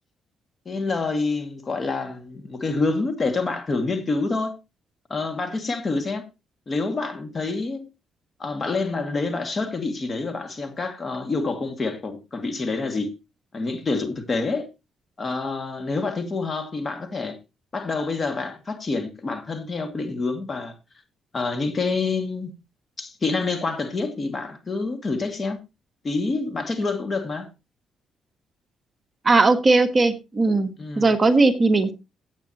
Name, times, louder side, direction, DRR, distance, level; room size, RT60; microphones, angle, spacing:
voice 1, 0.7-4.6 5.1-6.3 6.7-7.9 8.4-13.1 13.5-14.7 15.2-17.4 17.7-20.7 21.3-22.5 23.0-25.6 26.0-27.5 30.8-31.1, left 3 dB, 35° left, 2.3 m, -27 dB
voice 2, 29.2-30.7 31.0-31.9, right 3 dB, 30° right, 1.5 m, -18 dB
15.0 x 8.7 x 3.0 m
cardioid pair, 90°, 0 cm